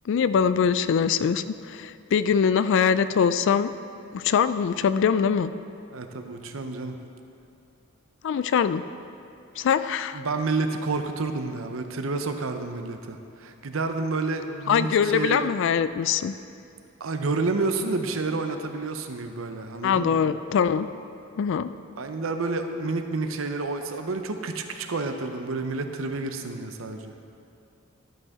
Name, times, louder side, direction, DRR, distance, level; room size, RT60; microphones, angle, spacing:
voice 1, 0.1-3.7 4.1-5.5 8.2-8.8 9.6-10.2 14.7-16.3 19.8-20.9 21.4-21.7, left 7 dB, 65° left, 13 dB, 0.3 m, -23 dB
voice 2, 5.9-7.0 10.1-15.5 17.0-20.2 22.0-27.1, right 3 dB, 75° right, 6 dB, 0.7 m, -29 dB
12.0 x 8.0 x 3.6 m, 2.6 s
head